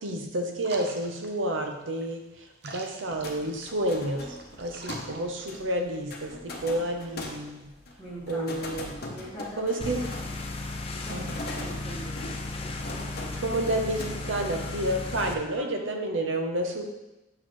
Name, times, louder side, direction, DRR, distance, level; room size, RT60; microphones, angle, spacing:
voice 1, 0.0-7.7 8.3-9.0 9.6-10.0 11.1-11.5 13.4-16.8, right 1 dB, 80° right, 3 dB, 0.9 m, -30 dB
sound 1, 0.6-6.0, right 2 dB, 55° right, 0.7 m, -46 dB
sound 2, 3.1-14.2, left 2 dB, 50° left, 0.8 m, -41 dB
voice 2, 8.0-8.5 9.1-10.0 11.0-11.3 11.6-12.3 15.5-15.7, equal, ahead, -15 dB, 1.9 m, -41 dB
sound 3, 9.8-15.3, left 2 dB, 30° left, 0.5 m, -35 dB
6.4 x 6.2 x 3.1 m, 1.0 s
head